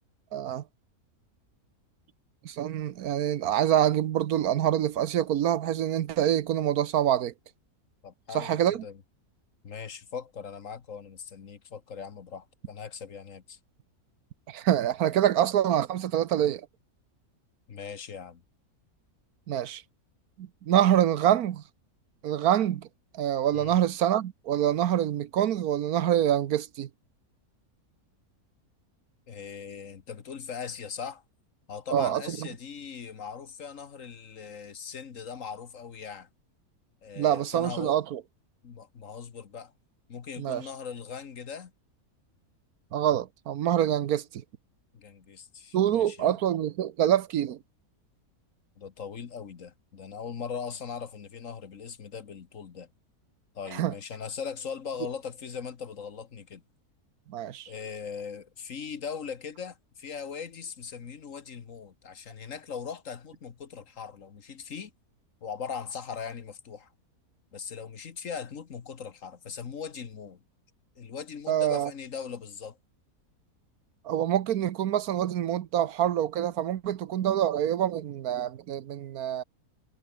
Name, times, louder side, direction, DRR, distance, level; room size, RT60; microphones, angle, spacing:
voice 1, 0.3-0.6 2.4-7.3 8.3-8.8 14.5-16.7 19.5-19.8 20.4-21.6 22.2-22.9 23.1-26.9 31.9-32.4 37.2-38.2 40.4-40.6 42.9-44.4 45.7-47.6 53.7-53.9 57.3-57.7 71.5-71.9 74.0-79.4, right 11 dB, 75° right, 1.3 m, -26 dB
voice 2, 8.0-9.0 9.6-13.6 17.7-18.4 23.5-23.8 29.3-31.2 31.7-36.3 37.0-38.0 38.6-39.7 40.1-41.7 44.9-46.4 48.8-52.9 53.6-56.6 57.7-64.9 65.4-66.9 67.5-70.4 71.0-72.8, left 6 dB, 60° left, 1.7 m, -40 dB
omnidirectional pair, 1.6 m